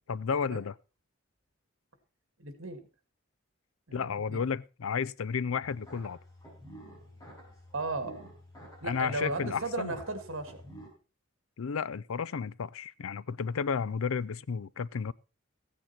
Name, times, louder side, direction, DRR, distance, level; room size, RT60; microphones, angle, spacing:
voice 1, 0.1-0.8 3.9-6.2 8.8-9.9 11.6-15.1, left 6 dB, 85° left, 0.5 m, -32 dB
voice 2, 2.4-2.8 3.9-4.4 7.7-8.3 8.8-10.6, right 2 dB, 70° right, 2.1 m, -35 dB
sound 1, 5.6-10.9, equal, 15° left, 5.0 m, -50 dB
15.0 x 8.9 x 4.3 m
head